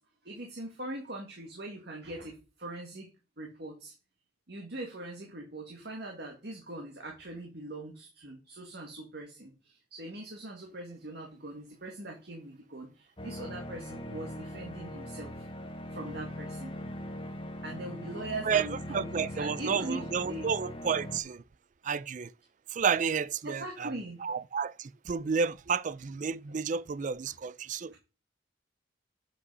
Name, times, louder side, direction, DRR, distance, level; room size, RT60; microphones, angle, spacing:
voice 1, 0.2-3.1 3.4-3.9 4.5-15.4 15.9-16.7 17.6-20.5 23.4-24.3 27.3-27.4 27.9-28.0, right 2 dB, 60° right, 1.9 m, -41 dB
sound 1, 13.2-21.2, left 1 dB, 30° left, 1.1 m, -41 dB
voice 2, 18.4-21.4 21.8-22.3 22.7-23.9 24.2-27.9, right 6 dB, 40° right, 0.4 m, -31 dB
8.3 x 5.6 x 5.4 m
head